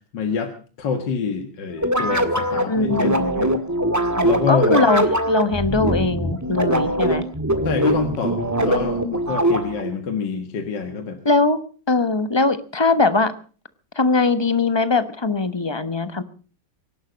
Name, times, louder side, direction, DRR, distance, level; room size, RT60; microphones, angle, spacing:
voice 1, 0.1-0.5 0.8-3.6 4.2-4.9 7.6-11.2, left 5 dB, 65° left, 7 dB, 2.2 m, -26 dB
sound 1, 1.8-9.9, right 1 dB, 10° right, 1.5 m, -22 dB
voice 2, 2.7-3.2 4.2-7.2 9.0-9.1 11.2-11.6 11.9-13.3 13.9-16.2, left 3 dB, 20° left, 12 dB, 0.9 m, -21 dB
24.5 x 11.5 x 5.2 m, 0.39 s
omnidirectional pair, 2.1 m